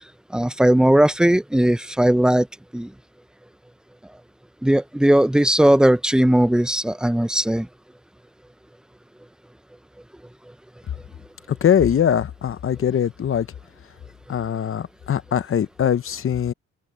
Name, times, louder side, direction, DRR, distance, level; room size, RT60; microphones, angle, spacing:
voice 1, 0.3-2.5 2.7-2.9 4.6-7.7, right 1 dB, ahead, 0.9 m, -18 dB
voice 2, 11.5-13.5 14.3-16.5, left 9 dB, 45° left, 0.9 m, -21 dB
open air
cardioid pair, 90°, 30 cm